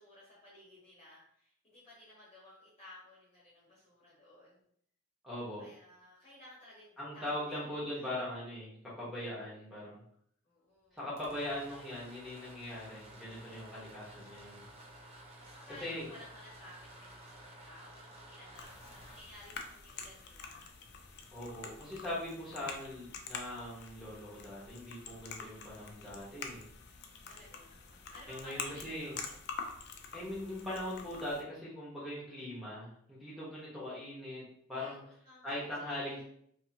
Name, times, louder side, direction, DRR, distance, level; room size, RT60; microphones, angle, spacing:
voice 1, 0.0-4.6 5.6-7.4 7.9-8.2 10.4-11.0 15.4-20.7 27.3-29.4 33.3-33.7 34.7-36.2, left 1 dB, 30° left, -8 dB, 0.9 m, -56 dB
voice 2, 5.2-5.7 7.0-10.0 10.9-14.7 15.8-16.1 21.3-26.6 28.3-29.1 30.1-35.0 35.4-36.2, left 1 dB, ahead, -9 dB, 1.0 m, -41 dB
sound 1, 11.0-20.8, right 1 dB, 30° right, 0.5 m, -54 dB
sound 2, 18.5-31.4, left 5 dB, 55° left, 0.3 m, -47 dB
2.7 x 2.6 x 2.8 m, 0.66 s
head